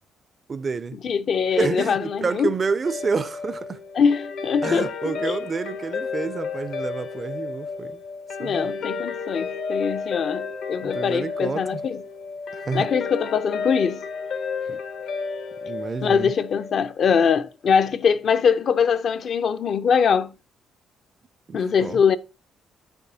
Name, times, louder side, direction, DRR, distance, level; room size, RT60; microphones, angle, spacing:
voice 1, 0.5-1.0 1.5-3.8 4.6-8.0 8.4-8.7 10.8-11.8 12.5-12.9 14.7-14.8 15.6-16.3 21.5-22.0, right 4 dB, 40° right, 0.4 m, -29 dB
voice 2, 1.0-2.5 3.9-5.4 8.4-12.0 12.7-14.0 16.0-20.3 21.5-22.2, left 6 dB, 60° left, 0.5 m, -22 dB
Guitar, 2.8-17.4, left 5 dB, 80° left, 1.1 m, -32 dB
9.2 x 6.9 x 2.7 m
cardioid pair, 90°, 0 cm